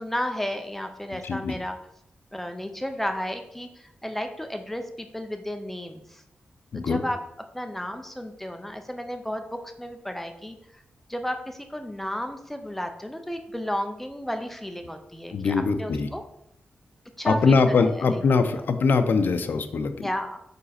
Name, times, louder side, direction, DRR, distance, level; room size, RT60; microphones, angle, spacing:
voice 1, 0.0-1.8 2.3-6.2 6.7-7.2 7.5-10.8 11.1-16.2 17.2-18.2 20.0-20.4, equal, 5° left, 6 dB, 0.4 m, -33 dB
voice 2, 1.2-1.5 6.7-7.0 15.3-16.1 17.3-20.0, left 4 dB, 60° left, 8 dB, 0.5 m, -22 dB
5.3 x 4.9 x 4.1 m, 0.80 s
wide cardioid pair, 170°, 4 cm